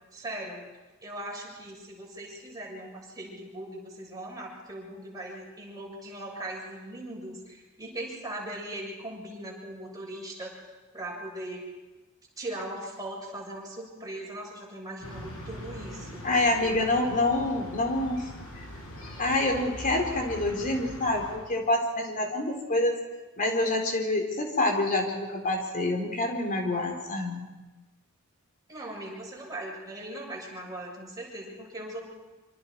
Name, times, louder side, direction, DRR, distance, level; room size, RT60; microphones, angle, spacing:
voice 1, 0.1-0.6 1.0-10.7 10.9-11.6 12.4-16.3 28.7-32.0, right 1 dB, 15° right, -2 dB, 6.9 m, -39 dB
sound 1, 15.0-21.4, equal, 70° left, 7.0 m, -42 dB
voice 2, 16.2-18.3 18.6-18.7 19.2-23.0 23.4-27.5, left 2 dB, 40° left, 2 dB, 4.0 m, -27 dB
26.0 x 25.5 x 4.7 m, 1.1 s
head